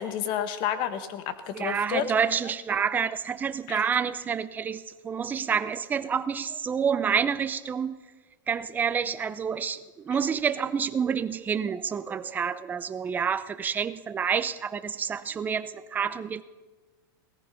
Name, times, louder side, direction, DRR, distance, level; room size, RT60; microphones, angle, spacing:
voice 1, 0.0-2.0 3.7-3.9, left 9 dB, 40° left, 11 dB, 1.3 m, -30 dB
voice 2, 1.5-7.9 8.5-16.4, right 7 dB, 15° right, 13 dB, 0.6 m, -28 dB
17.5 x 14.5 x 5.5 m, 1.3 s
supercardioid pair, 145°, 12 cm